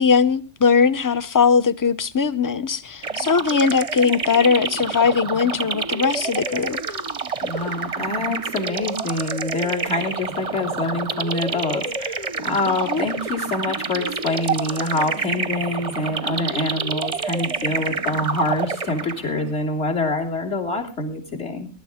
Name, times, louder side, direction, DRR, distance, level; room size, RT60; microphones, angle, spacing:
voice 1, 0.0-6.8 12.7-13.1, left 5 dB, 25° left, 0.5 m, -20 dB
sound 1, 3.0-19.4, right 4 dB, 35° right, 0.7 m, -28 dB
voice 2, 7.4-21.7, left 2 dB, 55° left, 3.5 m, -26 dB
22.0 x 12.5 x 3.6 m
omnidirectional pair, 1.3 m